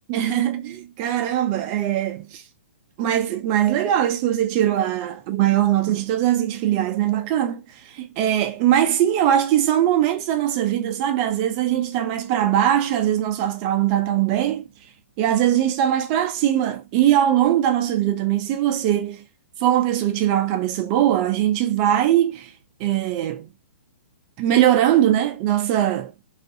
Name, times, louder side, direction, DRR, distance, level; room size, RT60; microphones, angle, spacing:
voice 1, 0.1-2.4 3.0-7.6 7.9-14.6 15.2-19.2 19.6-22.5 22.8-23.5 24.4-26.2, right 11 dB, 25° right, 0.3 m, -21 dB
2.4 x 2.3 x 2.6 m
hypercardioid pair, 150°, 7 cm